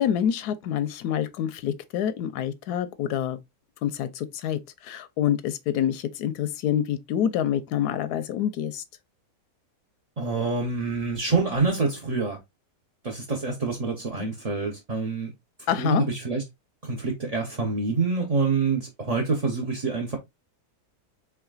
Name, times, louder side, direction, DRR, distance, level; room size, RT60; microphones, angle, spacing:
voice 1, 0.0-3.4 3.8-4.6 4.9-8.8 14.2-14.3 15.7-16.0, left 10 dB, 85° left, 1.1 m, -27 dB
voice 2, 10.2-12.4 13.0-15.3 15.8-16.4 16.8-20.2, right 4 dB, 35° right, 0.6 m, -26 dB
4.7 x 3.6 x 2.3 m
omnidirectional pair, 1.6 m